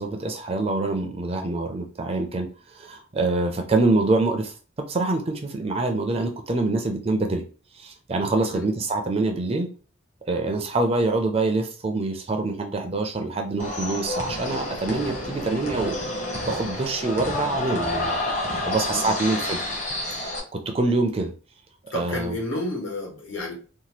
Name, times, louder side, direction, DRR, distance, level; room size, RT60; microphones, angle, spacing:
voice 1, 0.0-4.5 4.9-7.4 7.7-9.7 10.3-16.0 16.4-18.2 18.7-19.6 20.1-21.3 21.9-22.4, right 2 dB, 30° right, 5 dB, 0.4 m, -25 dB
voice 2, 8.4-8.7 18.7-19.4 21.9-23.5, left 1 dB, 65° left, -1 dB, 1.3 m, -32 dB
sound 1, 13.6-20.4, left 1 dB, 35° left, 0.8 m, -29 dB
2.8 x 2.2 x 3.1 m, 0.37 s
head